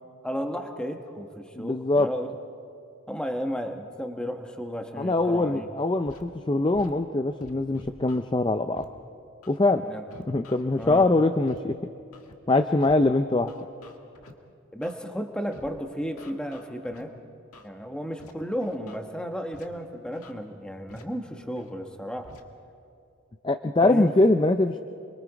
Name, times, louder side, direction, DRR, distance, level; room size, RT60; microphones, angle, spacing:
voice 1, 0.2-2.3 3.1-5.7 9.9-10.1 10.8-11.1 14.7-17.1 17.6-22.3 23.8-24.1, equal, 5° left, 4 dB, 1.1 m, -33 dB
voice 2, 1.6-2.1 5.0-8.9 9.5-9.9 10.3-11.8 12.5-13.5 23.4-24.8, left 2 dB, 20° left, 8 dB, 0.4 m, -23 dB
Scratching (performance technique), 6.1-6.2 6.7-6.9 7.4-8.2 8.8-8.9 9.4-9.6 10.1-11.0 11.5-11.6 12.1-12.3 12.8-13.0 13.5-14.3 14.8-15.0 15.5-15.7 16.2-17.0 17.5-17.7 18.2-18.3 18.6-19.0 19.5-19.7 20.1-20.3 20.9-21.0 21.6-21.7 22.2-22.4, left 2 dB, 90° left, 1.7 m, -48 dB
29.0 x 23.0 x 4.8 m, 2.5 s
head